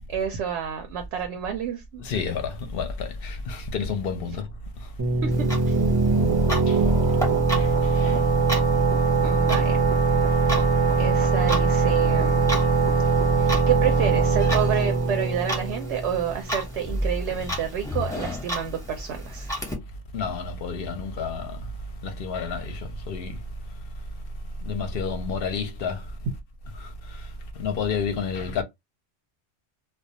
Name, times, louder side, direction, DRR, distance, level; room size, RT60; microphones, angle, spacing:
voice 1, 0.1-2.0 5.2-5.8 9.2-9.8 11.0-12.5 13.4-19.5, right 8 dB, 75° right, 0.8 m, -29 dB
voice 2, 2.0-4.5 6.7-6.8 7.6-8.2 20.1-21.6 22.0-23.4 24.6-26.0 26.8-27.3 27.6-28.6, left 5 dB, 60° left, 0.7 m, -30 dB
sound 1, 5.0-16.5, right 3 dB, 30° right, 0.4 m, -21 dB
Clock, 5.3-19.7, equal, 5° left, 0.7 m, -34 dB
2.3 x 2.2 x 2.7 m
omnidirectional pair, 1.2 m